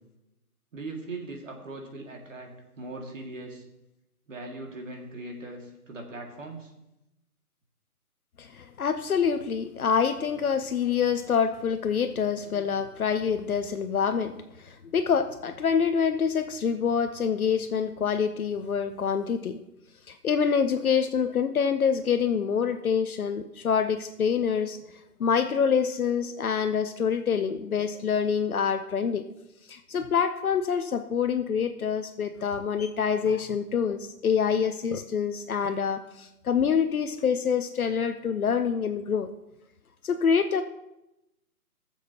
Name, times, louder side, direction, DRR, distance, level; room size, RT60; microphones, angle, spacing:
voice 1, 0.7-3.6 4.3-6.7, right 2 dB, 55° right, 1 dB, 2.3 m, -40 dB
voice 2, 8.4-19.6 20.1-24.8 25.2-29.2 29.7-39.3 40.0-40.6, left 6 dB, 65° left, 8 dB, 0.8 m, -26 dB
21.5 x 7.3 x 2.9 m, 0.90 s
hypercardioid pair, 165°, 46 cm